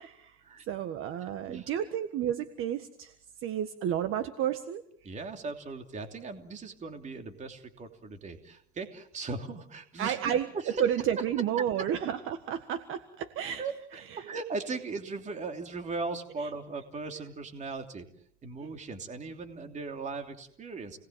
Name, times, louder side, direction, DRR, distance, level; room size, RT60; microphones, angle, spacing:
voice 1, 0.0-0.4 0.7-3.1 3.4-5.1 10.0-10.5 10.8-13.6 14.1-14.3, right 10 dB, 40° right, 9 dB, 1.6 m, -31 dB
voice 2, 5.0-10.8 13.6-18.1 18.4-21.0, right 3 dB, 20° right, 5 dB, 3.0 m, -38 dB
29.5 x 20.0 x 7.6 m, 0.69 s
supercardioid pair, 125°, 33 cm